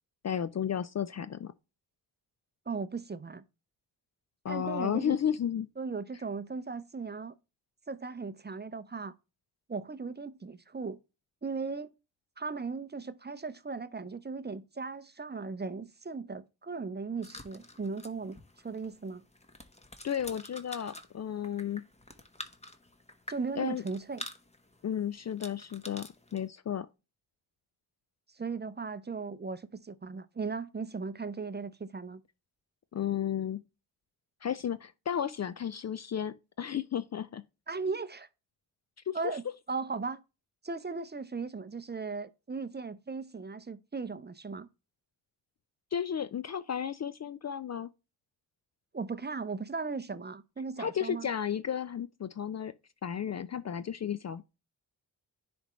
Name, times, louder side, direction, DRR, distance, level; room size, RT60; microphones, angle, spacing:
voice 1, 0.2-1.5 4.4-5.7 20.0-21.8 23.6-23.8 24.8-26.9 32.9-33.6 34.4-37.4 39.1-39.3 45.9-47.9 50.8-52.7 53.0-54.4, left 9 dB, 35° left, 0.4 m, -33 dB
voice 2, 2.7-3.4 4.5-5.2 5.8-7.3 7.9-9.1 9.7-11.0 11.4-11.9 12.4-18.4 18.6-19.2 23.3-24.2 28.3-32.2 37.7-38.3 39.1-40.2 40.6-44.7 48.9-51.3, right 4 dB, 20° right, 0.6 m, -37 dB
sound 1, 17.2-26.5, left 1 dB, 15° left, 1.2 m, -49 dB
10.0 x 3.5 x 3.1 m
supercardioid pair, 45°, 46 cm